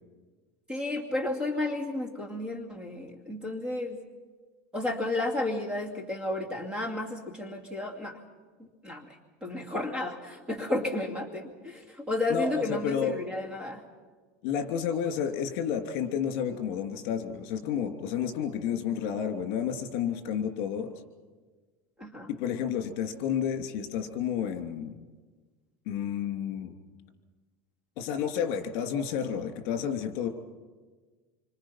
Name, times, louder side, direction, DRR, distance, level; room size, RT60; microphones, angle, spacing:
voice 1, 0.7-4.0 4.7-8.2 8.8-9.1 9.4-13.8 22.0-22.3, left 2 dB, 15° right, 2 dB, 2.4 m, -32 dB
voice 2, 12.3-13.2 14.4-20.9 22.3-25.0 25.9-26.7 28.0-30.3, left 8 dB, 50° left, 7 dB, 2.9 m, -31 dB
26.5 x 25.5 x 5.8 m, 1.4 s
supercardioid pair, 170°, 7 cm